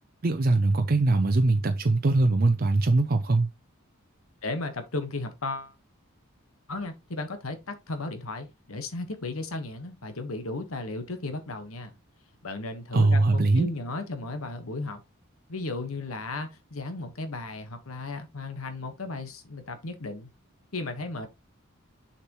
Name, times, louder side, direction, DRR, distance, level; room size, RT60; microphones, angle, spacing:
voice 1, 0.2-3.5 12.9-13.7, right 2 dB, 45° right, 0.5 m, -22 dB
voice 2, 4.4-5.7 6.7-11.9 12.4-15.0 15.5-20.3 20.7-21.3, left 2 dB, 85° left, 1.4 m, -35 dB
6.8 x 5.9 x 3.0 m
head